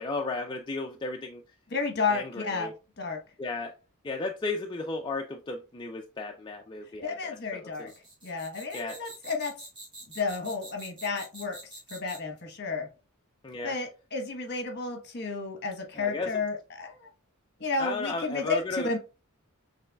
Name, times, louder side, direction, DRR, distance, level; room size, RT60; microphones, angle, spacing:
voice 1, 0.0-1.4 2.1-2.7 3.4-3.8 4.0-7.9 8.7-9.0 13.4-13.7 15.9-16.3 17.8-19.0, left 3 dB, 20° left, 0.3 m, -34 dB
voice 2, 1.7-3.2 7.0-7.9 8.2-9.5 10.1-12.9 13.6-17.1 17.6-19.0, left 4 dB, 50° left, 1.1 m, -32 dB
sound 1, 7.7-12.4, right 2 dB, 20° right, 1.6 m, -46 dB
6.7 x 3.1 x 2.3 m
head